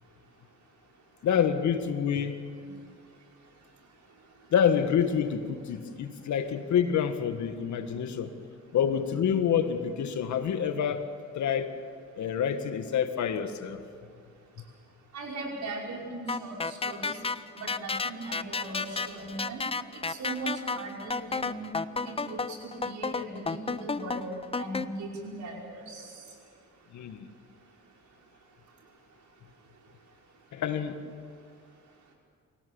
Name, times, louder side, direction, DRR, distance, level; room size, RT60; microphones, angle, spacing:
voice 1, 1.2-2.4 4.5-8.3 8.7-11.1 11.3-11.7 12.2-13.8 26.9-27.3 30.5-31.0, left 8 dB, 70° left, 8 dB, 1.7 m, -27 dB
voice 2, 15.1-17.2 17.5-19.6 20.1-21.7 22.0-24.3 24.6-26.0, right 2 dB, 70° right, -1 dB, 5.7 m, -38 dB
sound 1, 16.3-24.9, left 4 dB, 20° left, 0.6 m, -32 dB
26.0 x 16.5 x 7.1 m, 2.2 s
cardioid pair, 90°, 30 cm